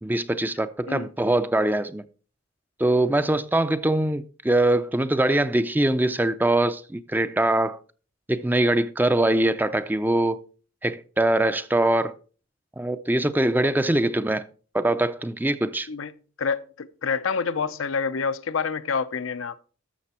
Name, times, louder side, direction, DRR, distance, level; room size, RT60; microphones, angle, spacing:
voice 1, 0.0-2.0 2.8-7.8 8.3-10.4 10.8-12.1 12.8-14.5 14.7-15.9, right 1 dB, 10° right, 0.4 m, -23 dB
voice 2, 16.4-19.6, left 5 dB, 85° left, 0.7 m, -27 dB
12.5 x 6.8 x 4.3 m
head